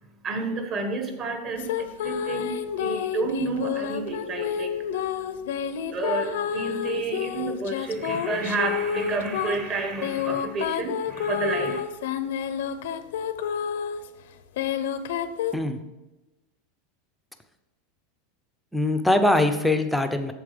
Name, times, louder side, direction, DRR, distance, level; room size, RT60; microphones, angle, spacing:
voice 1, 0.2-5.0 5.9-11.8, right 3 dB, 30° right, 6 dB, 1.3 m, -30 dB
sound 1, 1.6-14.1 14.6-15.5, left 8 dB, 80° left, 0.7 m, -29 dB
voice 2, 18.7-20.3, left 1 dB, ahead, 6 dB, 0.6 m, -22 dB
8.6 x 7.4 x 5.1 m, 1.1 s
supercardioid pair, 170°, 0 cm